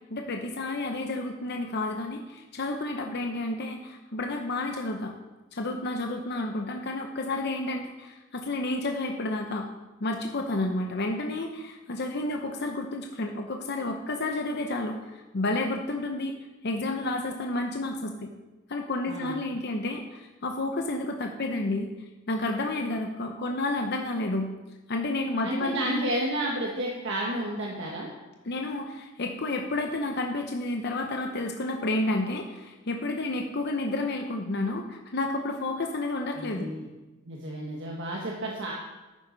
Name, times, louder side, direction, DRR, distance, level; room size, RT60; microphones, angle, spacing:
voice 1, 0.1-5.1 5.5-9.7 10.0-16.4 16.6-18.3 18.7-21.9 22.3-24.5 24.9-26.1 28.5-36.7, left 2 dB, 55° left, 3 dB, 0.8 m, -30 dB
voice 2, 25.4-28.1 36.4-36.9 37.3-38.7, right 1 dB, 65° right, -2 dB, 1.3 m, -31 dB
11.0 x 9.3 x 4.0 m, 1.1 s
head